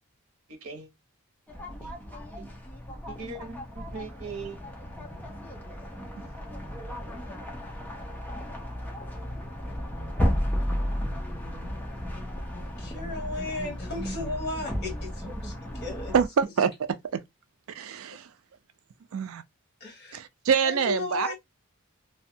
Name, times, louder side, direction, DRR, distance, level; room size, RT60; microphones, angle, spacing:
voice 1, 0.5-0.9 1.8-1.9 2.4-2.5 3.1-4.6, right 4 dB, 85° right, 0.8 m, -40 dB
sound 1, 1.5-16.3, equal, 10° left, 0.5 m, -34 dB
voice 2, 12.8-16.1 19.8-20.2 20.6-21.3, left 3 dB, 50° left, 1.1 m, -35 dB
voice 3, 16.1-16.7 17.1-17.2 17.7-18.3 19.1-19.4 20.1-21.3, right 6 dB, 70° right, 0.4 m, -25 dB
2.6 x 2.2 x 2.6 m
head